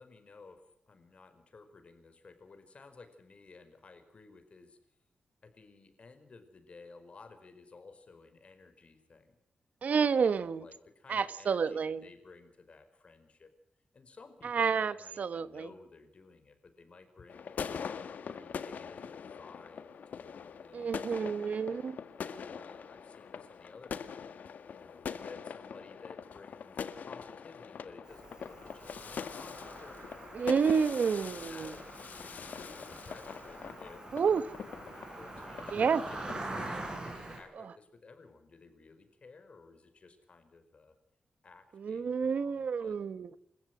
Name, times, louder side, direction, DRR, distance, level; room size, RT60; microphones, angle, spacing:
voice 1, 0.0-4.8 5.4-9.4 10.2-13.5 13.9-17.8 18.2-21.5 22.2-24.2 24.7-30.2 31.4-34.5 35.2-40.9 41.4-43.0, left 4 dB, 45° left, 7 dB, 4.9 m, -55 dB
voice 2, 9.8-10.6 11.1-12.0 14.4-15.7 20.7-21.9 30.3-31.7 34.1-34.4 35.7-36.0 37.6-37.7 41.7-43.3, right 6 dB, 60° right, 15 dB, 1.2 m, -29 dB
sound 1, 17.3-36.7, left 6 dB, 75° left, 1.7 m, -43 dB
Cricket, 28.1-37.4, right 2 dB, 30° right, 6.8 m, -44 dB
29.0 x 15.0 x 6.2 m, 0.76 s
wide cardioid pair, 105°, 3 cm